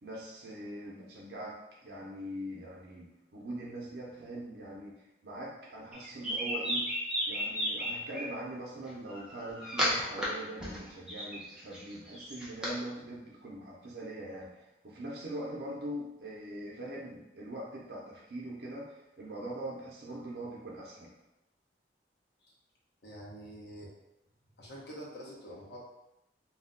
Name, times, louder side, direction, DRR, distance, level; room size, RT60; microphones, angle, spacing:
voice 1, 0.0-6.9 7.3-21.1, right 1 dB, 65° right, -4 dB, 0.6 m, -42 dB
sound 1, 5.9-8.2 9.1-10.2 10.6-12.7, equal, 5° right, 0.5 m, -33 dB
voice 2, 23.0-23.9 24.6-25.8, equal, 70° left, -4 dB, 0.7 m, -46 dB
2.3 x 2.1 x 3.6 m, 0.89 s
head